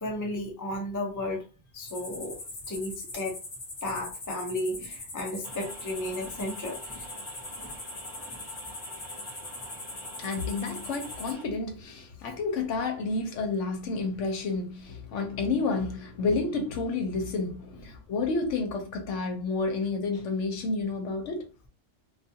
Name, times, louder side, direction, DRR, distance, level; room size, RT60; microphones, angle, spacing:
voice 1, 0.0-1.4 1.7-2.4 2.7-3.3 3.8-7.1 7.6-7.7 8.3-8.4, left 1 dB, 25° left, 0.4 m, -34 dB
sound 1, 1.9-11.3, left 2 dB, 45° left, 0.9 m, -41 dB
sound 2, 5.4-11.4, right 1 dB, 40° right, 1.0 m, -46 dB
voice 2, 10.2-21.5, left 3 dB, 75° left, 1.0 m, -30 dB
2.4 x 2.3 x 2.7 m
omnidirectional pair, 1.3 m